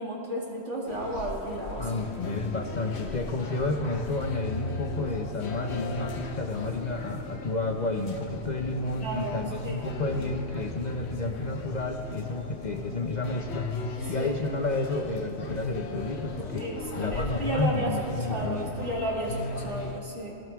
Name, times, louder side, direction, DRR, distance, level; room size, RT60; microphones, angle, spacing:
voice 1, 0.0-2.0 9.0-9.4 9.6-9.7 14.2-14.3 16.6-17.9 18.3-20.3, right 1 dB, 70° right, -3 dB, 2.7 m, -33 dB
sound 1, 0.9-20.0, left 3 dB, 65° left, 1.3 m, -37 dB
voice 2, 1.8-13.7 14.1-18.7, left 2 dB, 40° left, 4 dB, 0.9 m, -31 dB
21.0 x 17.0 x 3.6 m, 3.0 s
omnidirectional pair, 1.2 m